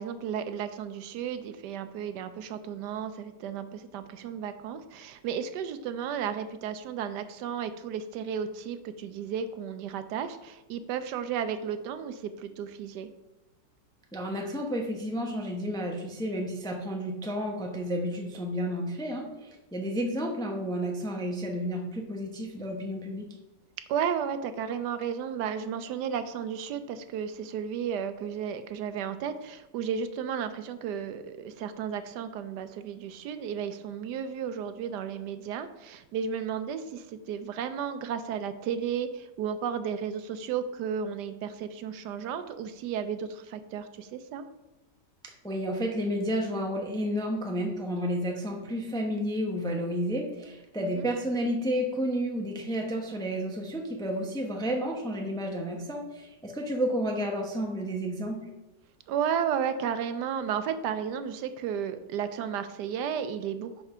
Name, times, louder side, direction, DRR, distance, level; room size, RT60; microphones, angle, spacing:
voice 1, 0.0-13.1 23.9-44.4 50.8-51.1 59.1-63.8, right 8 dB, 75° right, 10 dB, 1.1 m, -33 dB
voice 2, 14.1-23.3 45.4-58.4, equal, 5° left, 1 dB, 0.5 m, -31 dB
5.8 x 5.4 x 5.5 m, 0.99 s
omnidirectional pair, 1.9 m